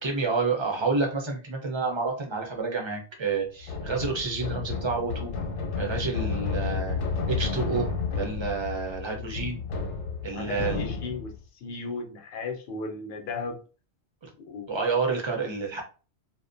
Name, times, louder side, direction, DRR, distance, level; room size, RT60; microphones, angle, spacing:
voice 1, 0.0-5.3 5.8-7.0 7.3-9.6 10.2-10.9 14.7-15.8, right 4 dB, 35° right, 2 dB, 0.5 m, -29 dB
sound 1, 3.6-11.4, left 5 dB, 85° left, 1.0 m, -31 dB
voice 2, 10.3-11.3 11.6-13.6 14.4-14.7, left 3 dB, 55° left, 4 dB, 0.7 m, -35 dB
2.5 x 2.1 x 2.5 m, 0.35 s
omnidirectional pair, 1.2 m